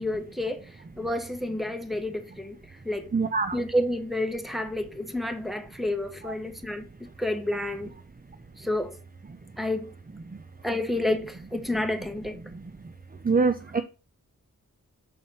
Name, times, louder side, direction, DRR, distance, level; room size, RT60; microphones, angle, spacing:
voice 1, 0.0-2.6 2.8-3.1 3.5-6.9 7.2-7.9 8.6-9.0 9.6-9.9 10.6-12.4, left 1 dB, ahead, 1.4 m, -30 dB
voice 2, 3.1-3.6 6.2-6.3 13.2-13.8, right 4 dB, 25° right, 0.6 m, -24 dB
7.0 x 4.2 x 5.5 m
cardioid pair, 45°, 35 cm